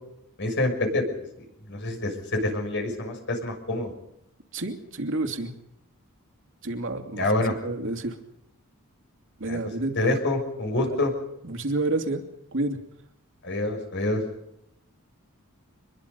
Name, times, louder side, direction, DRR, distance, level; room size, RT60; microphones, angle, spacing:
voice 1, 0.4-1.0 1.7-3.9 7.2-7.5 9.5-9.6 10.0-11.1 13.4-14.2, left 2 dB, 60° left, 4 dB, 6.2 m, -26 dB
voice 2, 4.5-5.5 6.6-7.3 7.6-8.2 9.4-10.0 10.9-11.0 11.4-12.2 12.5-12.8, right 2 dB, 65° right, 4 dB, 2.8 m, -29 dB
25.5 x 22.0 x 5.4 m, 0.80 s
head